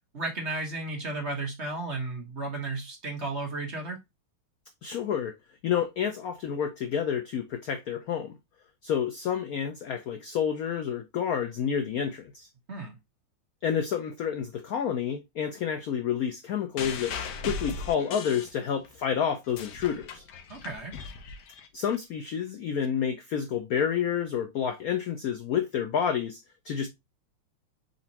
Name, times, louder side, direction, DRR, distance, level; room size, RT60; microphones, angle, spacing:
voice 1, 0.1-4.0 12.7-12.9 20.5-21.0, right 2 dB, 40° right, 1.1 m, -34 dB
voice 2, 4.8-5.3 5.6-8.3 8.8-12.5 13.6-17.1 17.5-20.2 21.7-26.9, left 8 dB, 80° left, 0.8 m, -29 dB
sound 1, 16.8-19.0 19.3-22.0 22.8-22.9, left 4 dB, 65° left, 1.2 m, -38 dB
4.2 x 4.1 x 2.7 m
omnidirectional pair, 2.3 m